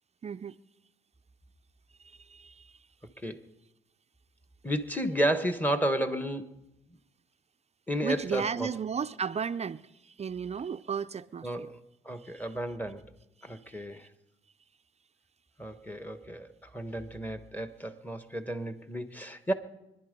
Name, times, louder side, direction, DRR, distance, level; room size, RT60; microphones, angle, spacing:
voice 1, 0.2-0.6 2.0-2.9 8.0-11.7 12.2-12.4 13.4-13.7, right 6 dB, 35° right, 0.5 m, -35 dB
voice 2, 4.6-6.5 7.9-8.7 11.4-11.8 12.0-13.0 13.4-14.1 15.6-16.5 16.7-19.5, right 1 dB, 10° left, 1.4 m, -32 dB
25.0 x 11.0 x 5.3 m
cardioid pair, 90°, 20 cm